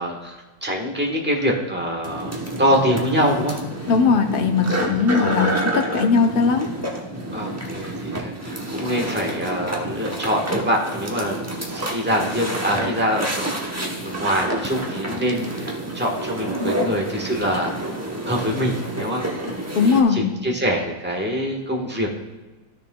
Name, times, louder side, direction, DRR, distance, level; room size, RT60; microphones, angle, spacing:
voice 1, 0.0-3.6 7.3-18.0 18.2-19.2 19.8-22.1, equal, 5° right, -1 dB, 1.0 m, -25 dB
sound 1, 2.0-20.0, right 1 dB, 20° right, 0.4 m, -29 dB
voice 2, 3.9-6.7 19.8-20.3, left 5 dB, 70° left, 4 dB, 0.5 m, -19 dB
13.5 x 6.6 x 2.3 m, 1.2 s
omnidirectional pair, 2.0 m